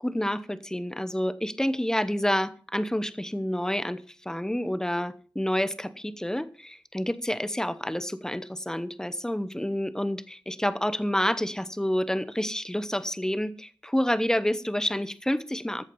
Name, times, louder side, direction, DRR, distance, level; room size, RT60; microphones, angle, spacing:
voice 1, 0.0-15.8, equal, 5° left, 15 dB, 0.9 m, -29 dB
14.0 x 7.3 x 5.4 m, 0.42 s
wide cardioid pair, 70°, 9 cm